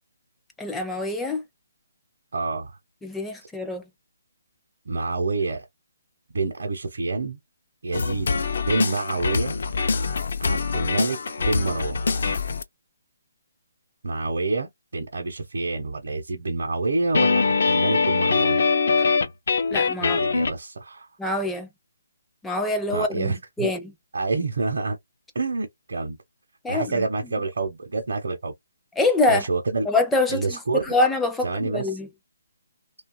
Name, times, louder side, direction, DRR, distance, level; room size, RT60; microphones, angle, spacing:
voice 1, 0.6-1.4 3.0-3.9 19.7-20.2 21.2-21.7 22.4-23.9 26.6-27.1 29.0-29.5 29.9-32.1, left 2 dB, 5° left, 0.4 m, -25 dB
voice 2, 2.3-2.8 4.9-5.6 6.3-7.4 7.8-8.3 8.6-9.5 10.4-12.0 14.0-18.6 20.0-21.1 22.9-23.7 24.1-25.0 25.3-26.2 26.7-28.5 29.3-29.9 30.3-31.0 31.4-31.9, right 3 dB, 70° right, 0.7 m, -27 dB
sound 1, 7.9-12.6 17.1-20.5, left 4 dB, 60° left, 0.5 m, -23 dB
2.8 x 2.3 x 2.2 m
hypercardioid pair, 160°, 0 cm